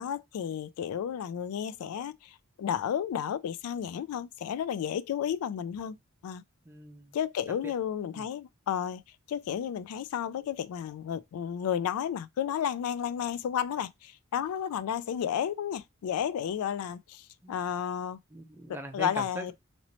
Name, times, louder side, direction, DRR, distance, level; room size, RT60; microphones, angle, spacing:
voice 1, 0.0-6.0 6.2-6.4 7.1-9.0 9.3-18.2 18.9-19.5, left 8 dB, 90° left, 0.3 m, -32 dB
voice 2, 6.7-7.2 7.6-7.7 8.1-8.2 17.4-17.5 18.3-19.5, right 1 dB, 10° right, 0.5 m, -41 dB
2.9 x 2.9 x 2.9 m
head